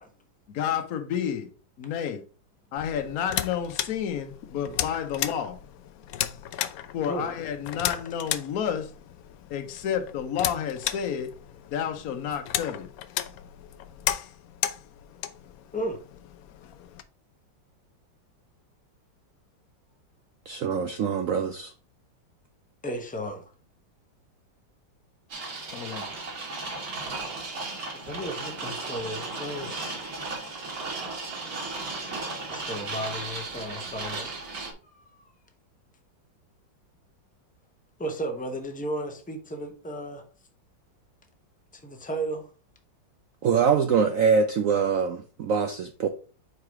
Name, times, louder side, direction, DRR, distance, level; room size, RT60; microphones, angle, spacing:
voice 1, 0.5-1.5 1.8-2.2 2.7-5.6 6.9-8.9 9.5-11.3 11.7-12.9 25.7-26.2, left 8 dB, 55° left, 1.2 m, -30 dB
sound 1, 2.8-17.0, left 11 dB, 75° left, 0.8 m, -35 dB
voice 2, 20.5-21.7 43.4-46.1, right 6 dB, 70° right, 0.7 m, -24 dB
voice 3, 22.8-23.5 27.9-29.9 31.7-34.3 35.0-35.3 38.0-40.2 41.7-42.5, right 1 dB, 10° left, 0.4 m, -34 dB
sound 2, 25.3-34.7, right 3 dB, 50° right, 2.0 m, -35 dB
4.8 x 4.7 x 4.7 m
omnidirectional pair, 2.0 m